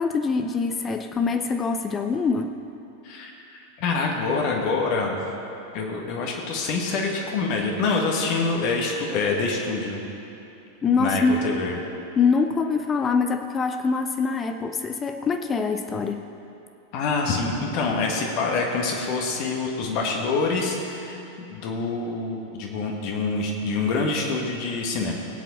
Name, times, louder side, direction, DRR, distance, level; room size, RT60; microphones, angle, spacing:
voice 1, 0.0-2.5 10.8-11.5 12.2-16.3, left 4 dB, 20° left, 7 dB, 0.5 m, -24 dB
voice 2, 3.8-5.1 5.7-10.0 11.0-11.8 16.9-21.2 21.5-25.1, left 4 dB, 45° left, 0 dB, 1.6 m, -26 dB
18.5 x 8.3 x 4.0 m, 2.8 s
figure-of-eight pair, 90°, 0 cm